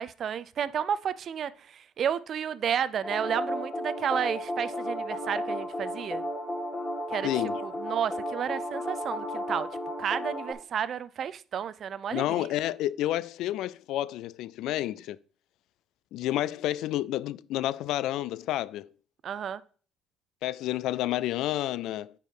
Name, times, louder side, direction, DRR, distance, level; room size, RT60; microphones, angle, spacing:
voice 1, 0.0-6.2 7.1-7.3 7.6-9.7 10.0-12.5 19.2-19.6, right 8 dB, 50° right, 0.5 m, -31 dB
sound 1, 3.0-10.5, equal, 20° left, 2.5 m, -33 dB
voice 2, 7.2-7.6 12.1-15.2 16.1-18.9 20.4-22.1, left 14 dB, 75° left, 0.3 m, -30 dB
9.2 x 4.6 x 5.2 m
cardioid pair, 115°, 0 cm